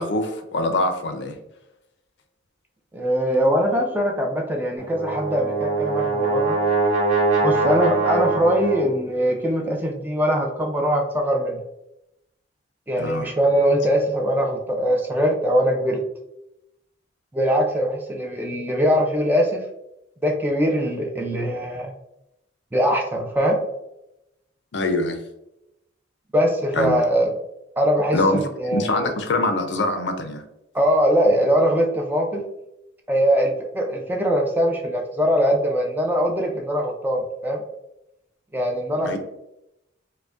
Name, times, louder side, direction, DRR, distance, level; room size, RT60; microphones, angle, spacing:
voice 1, 0.0-1.3 13.0-13.3 24.7-25.2 26.7-27.0 28.1-28.4 28.7-30.4 39.0-39.2, left 2 dB, 60° left, 6 dB, 0.5 m, -24 dB
voice 2, 2.9-6.6 7.4-11.6 12.9-16.0 17.3-19.6 20.2-21.9 22.7-23.6 26.3-27.3 27.8-29.1 30.7-32.4 33.1-37.6 38.5-39.2, equal, 10° right, 1 dB, 0.4 m, -22 dB
Brass instrument, 4.8-9.0, right 3 dB, 35° right, 0.8 m, -22 dB
4.9 x 2.1 x 2.4 m, 0.87 s
head